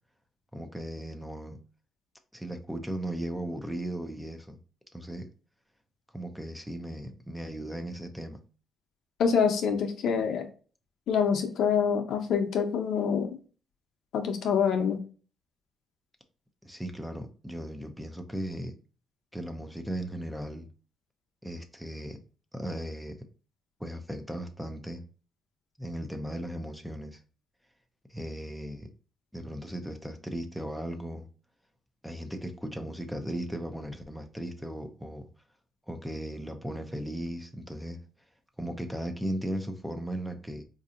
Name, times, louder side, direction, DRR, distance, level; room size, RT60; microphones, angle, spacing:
voice 1, 0.5-1.6 2.3-4.6 4.9-5.3 6.1-8.4 16.6-18.8 19.3-20.7 21.4-22.2 22.5-23.2 23.8-25.0 25.8-27.2 28.1-28.9 29.3-31.3 32.0-35.3 35.9-38.0 38.6-40.6, right 1 dB, 5° right, 0.6 m, -37 dB
voice 2, 9.2-10.5 11.1-13.3 14.1-15.0, left 6 dB, 75° left, 0.7 m, -26 dB
4.0 x 2.7 x 2.4 m
cardioid pair, 90°, 0 cm